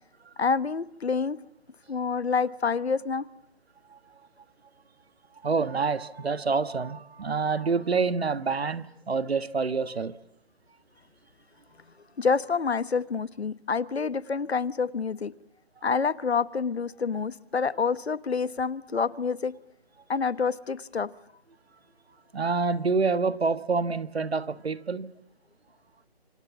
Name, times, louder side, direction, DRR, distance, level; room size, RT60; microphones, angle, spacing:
voice 1, 0.4-1.4 1.9-3.3 12.2-15.3 15.8-19.5 20.1-21.1, left 5 dB, 85° left, 1.3 m, -27 dB
voice 2, 5.4-10.2 22.3-25.1, right 4 dB, 75° right, 1.5 m, -27 dB
28.5 x 26.0 x 7.2 m
hypercardioid pair, 180°, 31 cm